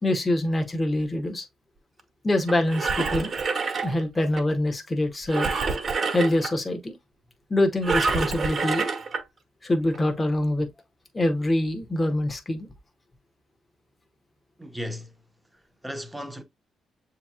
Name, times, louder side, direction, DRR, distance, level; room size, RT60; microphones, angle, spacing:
voice 1, 0.0-1.5 2.2-3.3 3.8-5.5 6.1-7.0 7.5-8.9 9.6-10.7 11.1-12.7, left 1 dB, 20° left, 1.0 m, -25 dB
Engine, 2.5-4.4 5.3-6.5 7.8-9.2 9.9-10.0, right 4 dB, 45° right, 1.1 m, -27 dB
voice 2, 14.6-15.1 15.5-16.4, equal, 10° right, 0.9 m, -36 dB
6.9 x 2.9 x 2.3 m
cardioid pair, 90°, 0 cm